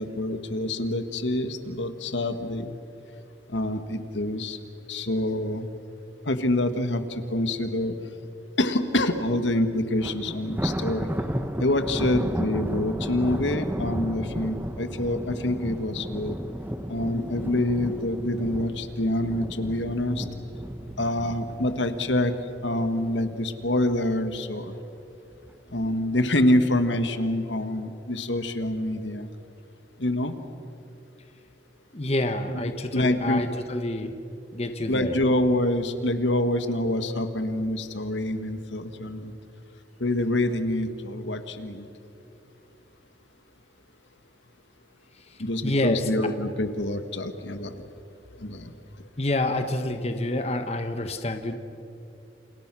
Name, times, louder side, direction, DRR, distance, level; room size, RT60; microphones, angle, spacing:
voice 1, 0.0-2.7 3.5-4.6 4.9-5.7 6.3-8.0 8.6-11.1 11.6-16.4 16.9-20.3 21.0-22.3 22.6-24.7 25.7-29.3 30.0-30.3 32.5-32.6 32.9-33.4 34.9-39.3 40.0-41.9 45.4-47.7 48.4-48.7, left 1 dB, 80° left, 9 dB, 1.7 m, -26 dB
Thunder, 10.0-23.3 23.7-24.0 24.3-24.4 25.3-25.9, equal, 10° right, 1.2 m, -33 dB
voice 2, 31.9-34.1 34.5-35.2 45.6-46.0 49.2-51.5, left 1 dB, 35° left, 7 dB, 1.4 m, -27 dB
29.5 x 29.0 x 6.2 m, 2.7 s
head